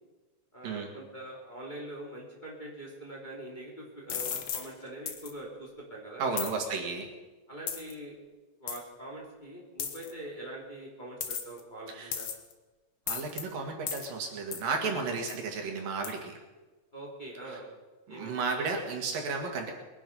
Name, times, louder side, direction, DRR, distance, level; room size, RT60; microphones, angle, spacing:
voice 1, 0.5-6.3 7.5-8.2 8.6-12.3 14.8-15.0 16.9-17.6 18.1-18.5, right 1 dB, 15° left, -4 dB, 3.0 m, -43 dB
sound 1, 4.1-4.7 5.1-5.3 6.4-6.5 7.7-7.9 8.7-8.8 9.8-10.1 11.2-11.6 12.1-12.5 13.1-13.4 13.9-14.1 14.5-14.7 15.3-15.4 16.0-16.1, left 8 dB, 60° left, 1.5 m, -35 dB
voice 2, 6.2-7.1 11.9-12.1 13.1-16.3 18.1-19.7, right 4 dB, 75° right, 2 dB, 3.7 m, -33 dB
22.0 x 11.0 x 5.5 m, 1.2 s
omnidirectional pair, 4.0 m